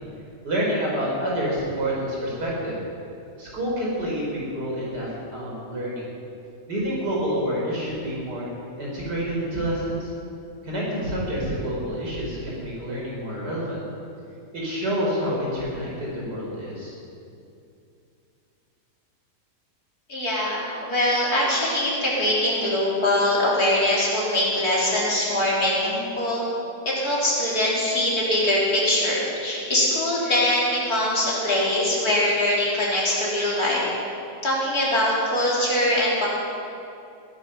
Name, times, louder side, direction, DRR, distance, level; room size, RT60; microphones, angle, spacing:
voice 1, 0.4-2.8 3.4-6.1 6.7-8.5 8.8-10.1 10.6-13.8 14.5-16.9, equal, 80° right, -4 dB, 5.3 m, -28 dB
voice 2, 20.1-26.4 26.9-33.8 34.4-36.3, left 1 dB, 65° left, -6 dB, 4.2 m, -22 dB
18.5 x 10.5 x 5.9 m, 2.6 s
omnidirectional pair, 1.8 m